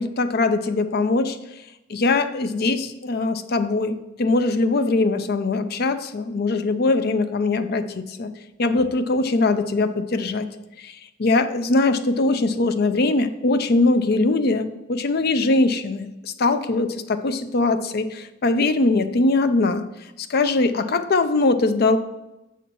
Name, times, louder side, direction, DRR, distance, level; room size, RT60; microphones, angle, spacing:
voice 1, 0.0-1.4 1.9-8.3 8.6-10.5 10.8-19.8 20.2-22.0, left 3 dB, 55° left, 11 dB, 0.5 m, -21 dB
7.2 x 4.3 x 5.3 m, 0.96 s
head